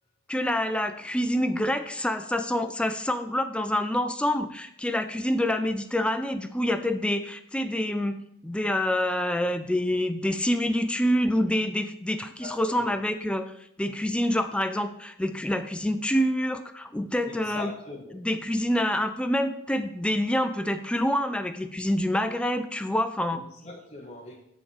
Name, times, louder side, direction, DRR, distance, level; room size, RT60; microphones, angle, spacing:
voice 1, 0.3-13.5 13.8-17.7 18.2-23.4, left 1 dB, 5° left, 0.3 m, -27 dB
voice 2, 12.4-13.0 17.2-18.2 23.3-24.4, left 3 dB, 30° left, 0.8 m, -41 dB
9.5 x 3.7 x 5.5 m
head